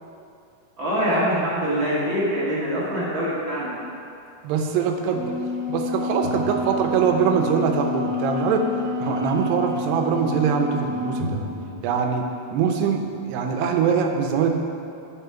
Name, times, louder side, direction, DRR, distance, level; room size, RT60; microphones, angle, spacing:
voice 1, 0.8-3.7, equal, 45° right, -8 dB, 1.8 m, -24 dB
voice 2, 4.4-5.4 5.7-8.7 9.0-11.4 11.8-14.5, right 6 dB, 80° right, 4 dB, 2.8 m, -23 dB
Wind instrument woodwind instrument, 5.1-11.4, left 3 dB, 80° left, 1.3 m, -29 dB
sound 1, 6.2-7.9 11.2-11.8, left 1 dB, 45° left, 1.7 m, -35 dB
8.7 x 6.4 x 5.7 m, 2.6 s
omnidirectional pair, 4.8 m